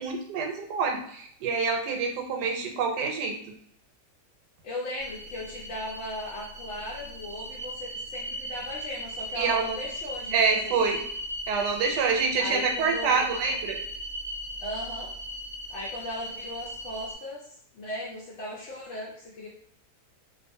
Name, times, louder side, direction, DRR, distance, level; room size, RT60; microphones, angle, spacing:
voice 1, 0.0-3.3 9.4-9.8 10.3-11.0 11.5-13.8, right 5 dB, 85° right, 3 dB, 1.2 m, -26 dB
voice 2, 2.4-2.7 4.6-10.8 12.4-13.3 14.6-15.1 15.7-17.5 17.7-19.5, left 1 dB, 65° left, -5 dB, 0.7 m, -37 dB
sound 1, 5.0-17.1, equal, 70° right, 1.0 m, -38 dB
2.5 x 2.4 x 2.6 m, 0.65 s
omnidirectional pair, 1.8 m